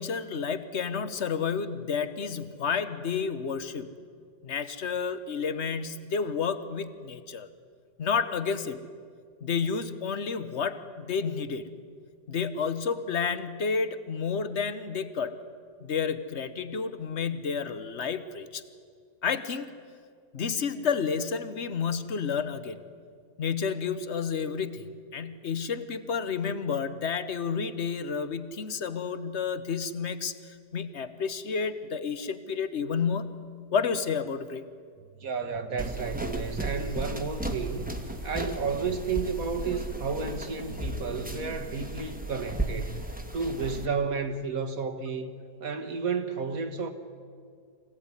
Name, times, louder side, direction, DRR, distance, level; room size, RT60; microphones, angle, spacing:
voice 1, 0.0-3.9 4.4-7.5 8.0-8.8 9.4-11.7 12.3-15.3 15.8-18.6 19.2-19.7 20.3-22.8 23.4-33.4 33.7-34.6, left 6 dB, 45° left, 12 dB, 1.2 m, -30 dB
sound 1, 35.0-41.8, right 1 dB, 80° right, 2.6 m, -47 dB
voice 2, 35.2-43.0 43.3-45.3 45.6-46.9, right 5 dB, 55° right, 6 dB, 1.8 m, -32 dB
sound 2, 35.8-43.9, right 1 dB, 5° right, 1.5 m, -35 dB
24.5 x 17.0 x 9.8 m, 2.1 s
omnidirectional pair, 1.8 m